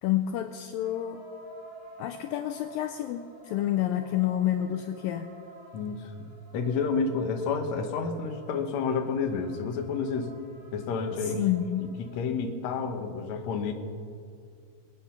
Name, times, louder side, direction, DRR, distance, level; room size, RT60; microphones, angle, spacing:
voice 1, 0.0-1.2 2.0-5.3 11.3-11.9, left 12 dB, 90° left, 7 dB, 2.0 m, -29 dB
sound 1, 0.8-12.2, right 2 dB, 55° right, 5.3 m, -51 dB
voice 2, 5.7-6.1 6.5-10.3 10.7-11.4 11.8-13.7, left 5 dB, 65° left, 4 dB, 1.9 m, -30 dB
22.0 x 8.9 x 5.8 m, 2.4 s
omnidirectional pair, 4.7 m